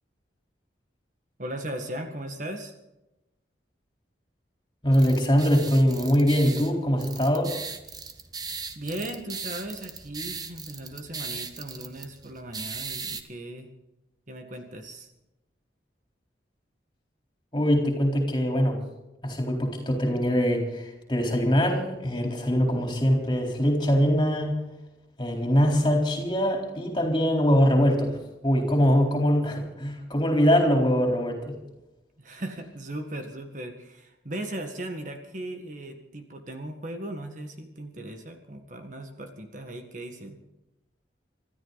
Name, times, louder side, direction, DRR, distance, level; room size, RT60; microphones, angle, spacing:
voice 1, 1.4-2.7 8.7-13.7 14.3-15.1 32.2-40.4, right 1 dB, 40° right, 5 dB, 1.7 m, -37 dB
voice 2, 4.8-7.5 17.5-18.8 19.2-24.5 25.2-28.2 28.4-31.6, equal, 25° left, 1 dB, 3.9 m, -23 dB
sound 1, 4.9-13.2, right 5 dB, 20° right, 1.1 m, -38 dB
26.0 x 13.5 x 4.1 m, 0.95 s
head